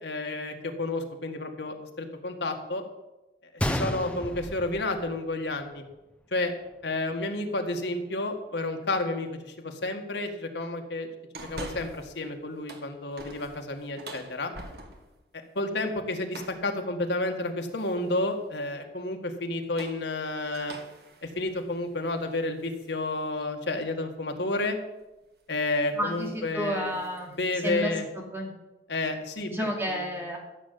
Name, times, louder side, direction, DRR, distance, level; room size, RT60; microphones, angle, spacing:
voice 1, 0.0-2.8 3.5-5.8 6.3-6.5 6.8-11.1 11.4-14.5 15.6-20.7 21.2-24.8 25.5-27.0 27.3-28.1 28.9-30.1, left 2 dB, 80° left, 4 dB, 1.8 m, -31 dB
Gunshot gunfire, 3.6-5.6 5.9-6.0 6.7-6.9, equal, 5° left, 0.8 m, -32 dB
sound 1, 11.3-12.2 12.5-15.2 16.3-16.7 17.8-18.2 19.5-22.9 23.4-23.5 25.0-25.2 25.6-25.8 26.1-26.4 26.7-27.8, right 2 dB, 65° right, 1.8 m, -45 dB
voice 2, 26.0-28.5 29.5-30.4, equal, 15° right, -1 dB, 2.6 m, -31 dB
14.0 x 7.0 x 8.4 m, 1.0 s
head